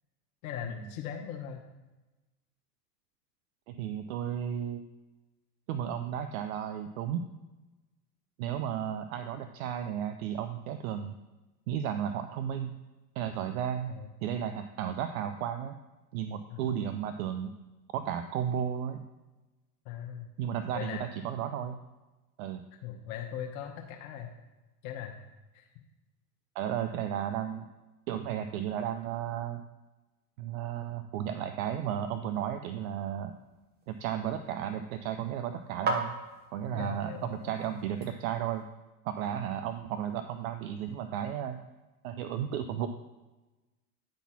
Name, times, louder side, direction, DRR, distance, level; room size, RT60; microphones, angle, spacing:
voice 1, 0.4-1.6 13.9-14.1 16.5-16.8 19.8-20.3 20.7-21.2 22.8-24.3 24.8-25.2 25.5-25.7 36.7-37.6, left 9 dB, 55° left, 1 dB, 1.0 m, -40 dB
voice 2, 3.7-4.9 5.7-7.3 8.4-11.2 11.7-12.8 13.2-13.9 14.2-15.8 16.1-17.5 17.9-19.0 20.4-21.8 22.4-22.6 26.6-27.7 28.1-29.6 30.4-33.3 33.9-36.1 36.5-38.7 39.0-41.6 42.0-42.9, right 9 dB, 55° right, 9 dB, 0.6 m, -34 dB
sound 1, 32.8-38.6, right 3 dB, 20° right, 1.1 m, -40 dB
9.7 x 4.2 x 4.2 m, 1.1 s
hypercardioid pair, 90°, 49 cm